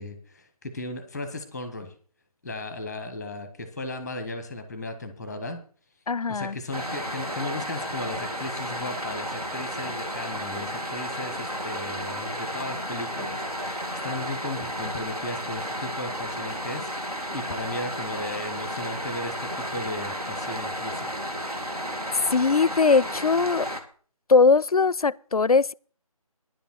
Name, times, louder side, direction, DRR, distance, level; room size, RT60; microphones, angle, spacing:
voice 1, 0.0-1.9 2.4-5.6 6.3-21.1, left 2 dB, ahead, 0.9 m, -36 dB
voice 2, 6.1-6.6 22.3-23.7 24.3-25.7, left 4 dB, 80° left, 0.4 m, -20 dB
sound 1, 6.7-23.8, equal, 85° right, 2.4 m, -33 dB
10.5 x 7.0 x 7.4 m
figure-of-eight pair, 160°, 19 cm